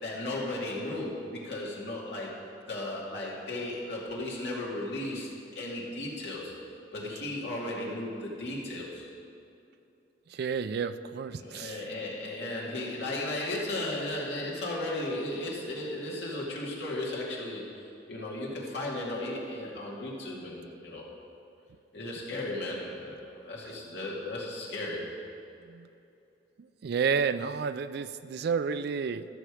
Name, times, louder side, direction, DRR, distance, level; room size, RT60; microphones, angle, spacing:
voice 1, 0.0-2.3 2.7-6.5 6.9-9.1 11.3-21.1 21.9-25.0, left 1 dB, 65° left, -4 dB, 2.3 m, -35 dB
voice 2, 10.3-11.8 25.7-25.9 26.8-29.3, right 6 dB, 60° right, 13 dB, 0.3 m, -30 dB
13.5 x 6.8 x 4.9 m, 2.7 s
head